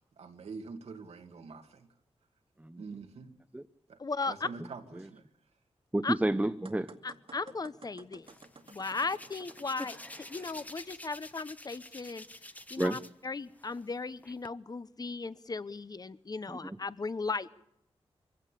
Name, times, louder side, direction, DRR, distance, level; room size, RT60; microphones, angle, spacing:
voice 1, 0.0-1.9 2.8-3.3 3.9-4.0 4.3-5.3, right 4 dB, 85° right, 5 dB, 2.2 m, -45 dB
voice 2, 4.0-4.5 6.0-6.1 7.0-8.3 8.7-12.2 12.7-17.5, left 4 dB, 35° left, 16 dB, 0.9 m, -36 dB
voice 3, 5.9-7.0 12.8-13.0 16.5-16.8, right 1 dB, 10° right, 8 dB, 0.8 m, -31 dB
sound 1, 6.6-10.8, right 4 dB, 60° right, 2.0 m, -55 dB
Hands, 8.3-13.3 13.6-14.5, left 1 dB, 15° left, 1.1 m, -48 dB
23.5 x 16.0 x 8.4 m, 0.80 s
cardioid pair, 70°, 11 cm